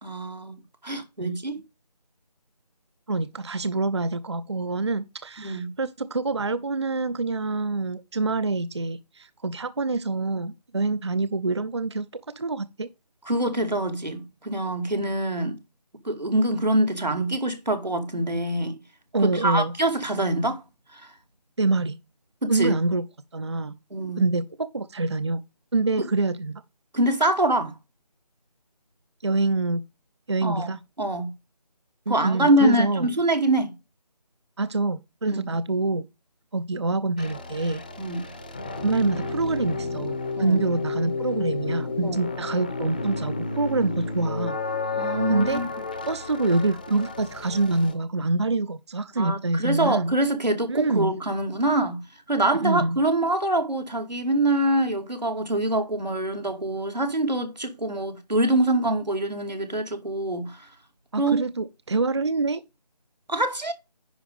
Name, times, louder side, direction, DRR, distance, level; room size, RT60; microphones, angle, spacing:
voice 1, 0.0-0.5 0.8-1.6 5.4-5.7 13.3-15.6 16.0-18.8 19.2-20.6 20.9-21.0 22.4-22.7 23.9-24.3 26.9-27.7 30.4-30.7 31.0-31.3 32.1-33.7 35.3-35.4 38.0-38.2 40.4-40.6 42.0-42.2 45.0-45.7 49.2-52.0 52.3-60.6 61.2-61.4 63.3-63.7, right 1 dB, 90° right, 2.4 m, -25 dB
voice 2, 3.1-12.1 12.4-12.9 19.1-19.7 21.6-22.0 22.5-23.0 23.3-23.8 24.2-25.4 25.7-26.6 29.2-29.8 30.3-30.8 32.1-33.1 34.6-36.1 36.5-37.8 38.8-44.6 45.3-45.6 46.0-50.1 50.7-51.2 52.5-53.0 61.1-62.6, right 3 dB, 40° right, 0.5 m, -26 dB
sound 1, 37.2-47.9, left 3 dB, 15° left, 0.7 m, -32 dB
10.0 x 5.1 x 5.1 m
figure-of-eight pair, 160°, 21 cm